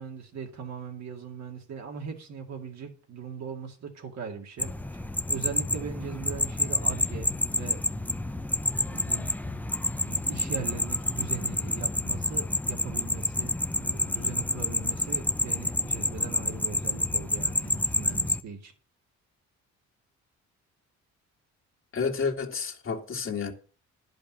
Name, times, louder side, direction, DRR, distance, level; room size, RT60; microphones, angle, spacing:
voice 1, 0.0-7.8 8.9-9.3 10.0-18.7, right 6 dB, 60° right, 2.2 m, -40 dB
sound 1, 4.6-18.4, left 2 dB, 5° left, 0.7 m, -29 dB
voice 2, 21.9-23.5, left 5 dB, 45° left, 2.1 m, -30 dB
10.5 x 5.2 x 7.2 m
cardioid pair, 90°, 30 cm